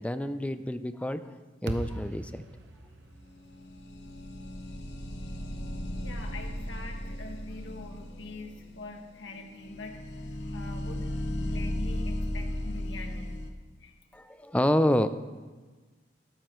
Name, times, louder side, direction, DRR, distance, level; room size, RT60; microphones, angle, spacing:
voice 1, 0.0-1.3 1.6-2.4 14.1-15.1, left 1 dB, 5° left, 11 dB, 0.4 m, -28 dB
sound 1, 1.7-5.9, right 1 dB, 70° right, 0.9 m, -42 dB
sound 2, 3.4-13.5, left 1 dB, 65° left, 1.0 m, -36 dB
voice 2, 6.0-13.4 13.8-13.9, left 2 dB, 85° left, 3 dB, 1.5 m, -44 dB
13.5 x 12.5 x 3.1 m, 1.3 s
head